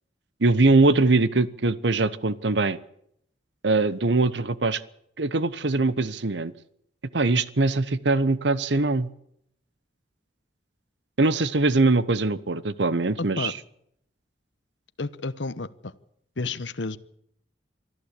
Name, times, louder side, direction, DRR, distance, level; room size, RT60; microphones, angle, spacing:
voice 1, 0.4-2.8 3.6-4.8 5.2-6.5 7.1-9.1 11.2-13.5, right 3 dB, 75° right, 17 dB, 1.0 m, -22 dB
voice 2, 13.2-13.5 15.0-15.9 16.4-17.0, left 3 dB, 85° left, 14 dB, 1.0 m, -31 dB
24.5 x 14.0 x 8.4 m, 0.72 s
head